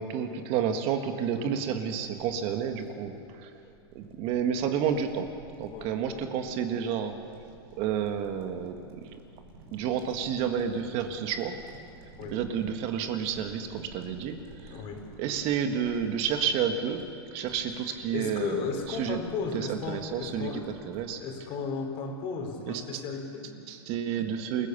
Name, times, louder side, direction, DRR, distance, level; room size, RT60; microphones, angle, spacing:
voice 1, 0.0-3.5 3.9-5.3 5.6-7.1 7.8-8.8 9.7-11.6 12.3-14.8 15.2-19.2 19.5-20.5 20.8-21.2 22.7-23.0 23.7-24.7, right 8 dB, 45° right, 6 dB, 1.7 m, -30 dB
voice 2, 1.3-1.7 5.7-6.2 12.2-12.4 14.7-15.1 17.8-20.7 21.2-23.5, left 5 dB, 40° left, 3 dB, 4.4 m, -35 dB
sound 1, 2.0-21.3, right 3 dB, 65° right, 4.8 m, -53 dB
28.0 x 16.0 x 6.9 m, 2.4 s
hypercardioid pair, 130°, 14 cm